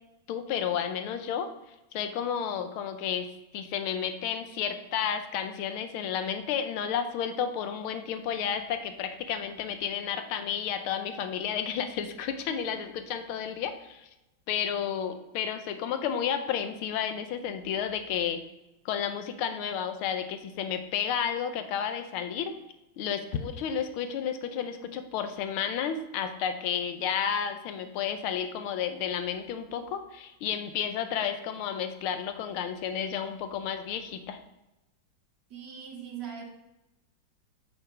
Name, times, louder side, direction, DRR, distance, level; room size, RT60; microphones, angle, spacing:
voice 1, 0.3-1.5 1.9-14.1 14.5-18.4 18.8-22.5 23.0-34.4, left 8 dB, 90° left, 8 dB, 1.6 m, -32 dB
voice 2, 35.5-36.4, right 8 dB, 60° right, 1 dB, 1.8 m, -40 dB
7.9 x 6.1 x 4.9 m, 0.97 s
omnidirectional pair, 2.3 m